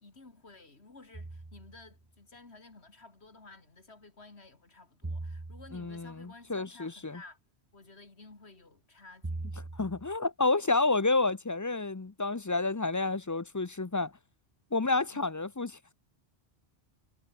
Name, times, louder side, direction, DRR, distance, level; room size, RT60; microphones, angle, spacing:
voice 1, 0.0-7.4 7.7-9.5 15.1-15.3, left 3 dB, 70° left, 3.2 m, -53 dB
sound 1, 1.1-1.9 5.0-6.1 9.2-10.2, right 2 dB, 20° right, 1.1 m, -40 dB
voice 2, 5.7-7.2 9.7-14.1 14.7-15.8, left 3 dB, 20° left, 0.5 m, -30 dB
omnidirectional pair, 1.1 m